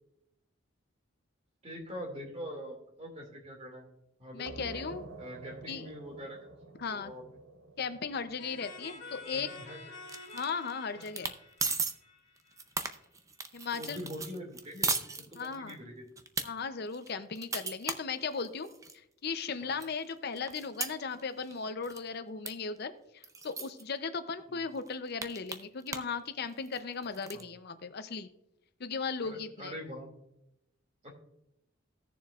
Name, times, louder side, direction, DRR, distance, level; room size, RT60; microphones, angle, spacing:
voice 1, 1.6-3.9 4.2-4.8 5.2-6.5 6.9-7.2 9.3-9.8 10.9-11.1 13.7-14.9 15.2-16.0 19.6-19.7 24.5-24.6 27.3-27.4 29.2-30.2 31.0-31.1, equal, 35° right, 2 dB, 2.2 m, -44 dB
voice 2, 4.3-5.0 5.7-5.9 6.8-7.1 7.8-9.5 10.3-11.3 13.5-14.0 15.3-15.8 16.4-18.7 18.9-28.3 28.8-29.7, left 5 dB, 50° left, 10 dB, 0.6 m, -37 dB
sound 1, 4.5-9.8, right 3 dB, 70° right, 0.8 m, -49 dB
sound 2, 8.4-13.0, left 3 dB, 70° left, 2.2 m, -49 dB
sound 3, 10.1-10.7 11.0-11.4 11.6-11.9 12.4-15.7 16.2-16.5 16.9-19.0 19.4-19.5 19.8-21.6 21.8-22.1 22.5-22.6 22.8-22.9 23.2-23.8 24.4-24.5 24.8-26.2 26.4-27.4, right 4 dB, 15° right, 0.5 m, -36 dB
17.5 x 6.9 x 2.4 m, 0.83 s
head